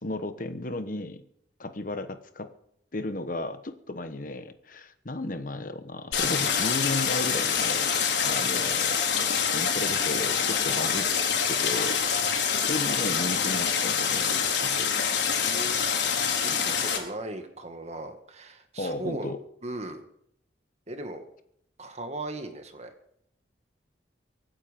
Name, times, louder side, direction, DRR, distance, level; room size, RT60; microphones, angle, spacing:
voice 1, 0.0-1.2 1.6-2.5 2.9-7.9 8.2-9.0 9.5-11.1 11.5-14.9 18.8-19.4, left 2 dB, 50° left, 10 dB, 1.2 m, -34 dB
Stream, 6.1-17.0, left 7 dB, 80° left, 4.3 m, -26 dB
voice 2, 15.4-15.8 16.4-19.3 19.6-20.0 20.9-21.2 21.8-22.9, right 1 dB, 40° right, 7 dB, 1.9 m, -37 dB
24.0 x 9.2 x 5.3 m, 0.72 s
head